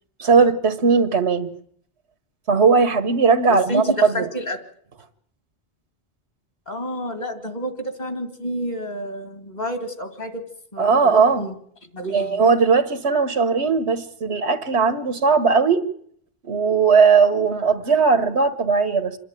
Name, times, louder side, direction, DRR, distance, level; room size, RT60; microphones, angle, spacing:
voice 1, 0.2-1.5 2.5-4.3 10.8-11.4 12.1-15.8 16.5-19.2, right 5 dB, 85° right, 12 dB, 1.6 m, -18 dB
voice 2, 3.5-4.6 6.7-10.4 10.7-11.6 11.9-12.4, equal, 40° left, 8 dB, 2.5 m, -29 dB
27.5 x 11.0 x 9.1 m, 0.65 s
omnidirectional pair, 1.1 m